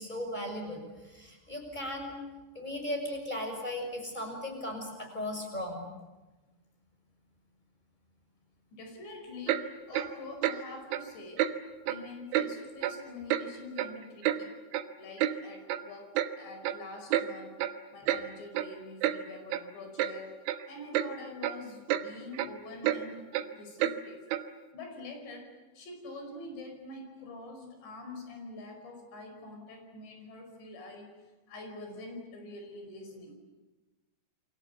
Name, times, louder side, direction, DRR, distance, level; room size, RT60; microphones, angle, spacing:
voice 1, 0.0-2.2 2.5-5.9, left 1 dB, 10° left, 3 dB, 6.2 m, -37 dB
voice 2, 8.7-11.5 11.8-14.5 15.0-17.6 17.9-20.4 20.7-23.2 23.5-24.3 24.7-31.1 31.5-33.3, left 2 dB, 70° left, 4 dB, 7.4 m, -45 dB
Clock, 9.5-9.6 9.9-10.1 10.4-10.6 10.9-11.0 11.4-11.5 11.9-12.0 12.3-12.5 12.8-13.0 13.3-13.4 13.8-14.4 14.7-14.8 15.2-15.3 15.7-15.8 16.2-16.3 16.6-16.8 17.1-17.3 17.6-17.8 18.1-18.2 18.5-18.7 19.0-19.2 19.5-19.6 20.0-20.1 20.5-20.6 20.9-21.1 21.4-21.6 21.9-22.1 22.3-22.5 22.8-23.0 23.3-23.5 23.8-24.0 24.3-24.4, right 13 dB, 90° right, 3.6 m, -29 dB
29.5 x 24.0 x 8.3 m, 1.2 s
omnidirectional pair, 5.2 m